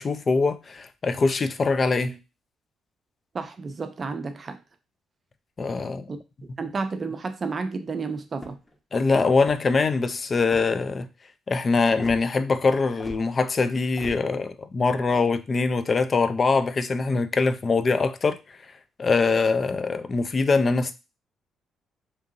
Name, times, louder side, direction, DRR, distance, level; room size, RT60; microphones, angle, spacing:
voice 1, 0.0-2.2 5.6-6.1 8.9-11.1 11.5-18.4 19.0-20.9, left 4 dB, 40° left, 0.3 m, -23 dB
voice 2, 3.3-4.6 6.1-6.2 6.6-8.6, right 4 dB, 40° right, 0.5 m, -31 dB
sound 1, 8.3-8.8 9.4-9.8 10.5-10.9 12.0-12.2 13.0-13.2 14.0-14.2, left 1 dB, 15° left, 0.7 m, -41 dB
2.8 x 2.6 x 2.5 m
cardioid pair, 90°, 0 cm